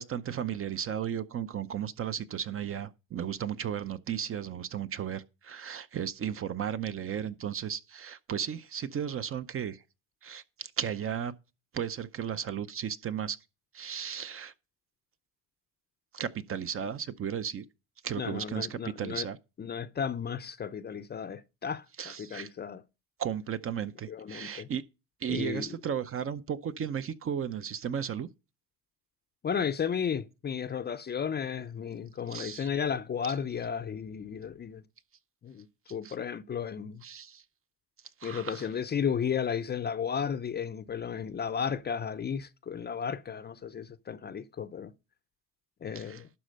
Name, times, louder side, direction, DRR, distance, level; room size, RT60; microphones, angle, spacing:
voice 1, 0.0-9.8 10.2-11.3 11.7-13.4 13.7-14.5 16.1-17.6 18.0-19.4 22.0-22.5 23.2-24.8 25.2-28.3 32.3-32.7 36.0-36.1 37.0-37.4 38.2-38.7 45.9-46.2, right 8 dB, 35° right, 0.6 m, -35 dB
voice 2, 18.2-19.3 19.6-22.8 24.1-24.7 25.3-25.8 29.4-34.8 35.4-37.0 38.2-44.9 45.8-46.3, left 7 dB, 25° left, 0.6 m, -34 dB
12.0 x 4.3 x 6.3 m
cardioid pair, 115°, 40 cm